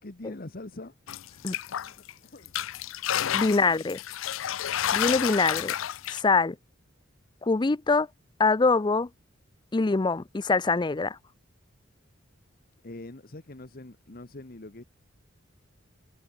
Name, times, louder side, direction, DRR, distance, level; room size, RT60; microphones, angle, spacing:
voice 1, 0.0-0.9 1.4-2.5 3.5-3.8 12.8-14.8, left 2 dB, 45° left, 1.2 m, -44 dB
sound 1, 1.1-2.1 2.5-6.2, left 10 dB, 80° left, 0.5 m, -30 dB
voice 2, 3.3-4.0 4.9-5.7 6.1-6.6 7.4-8.1 8.4-9.1 9.7-11.2, left 3 dB, 20° left, 0.4 m, -24 dB
head